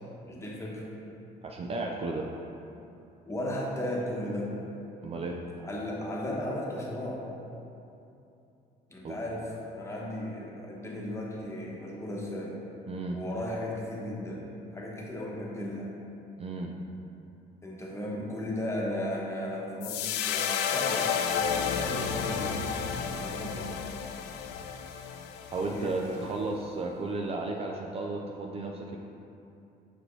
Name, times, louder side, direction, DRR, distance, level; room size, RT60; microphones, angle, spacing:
voice 1, 0.2-0.8 3.3-4.5 5.6-7.2 8.9-9.5 9.7-12.6 13.1-15.9 17.6-23.7 25.6-26.4, left 1 dB, 15° left, -4 dB, 1.2 m, -35 dB
voice 2, 1.4-2.2 5.0-5.4 9.0-9.2 12.9-13.2 16.4-16.7 25.5-29.0, right 3 dB, 35° right, 1 dB, 0.4 m, -33 dB
sound 1, 19.8-26.2, left 7 dB, 90° left, 0.4 m, -32 dB
6.2 x 4.9 x 3.2 m, 2.8 s
cardioid pair, 110°, 17 cm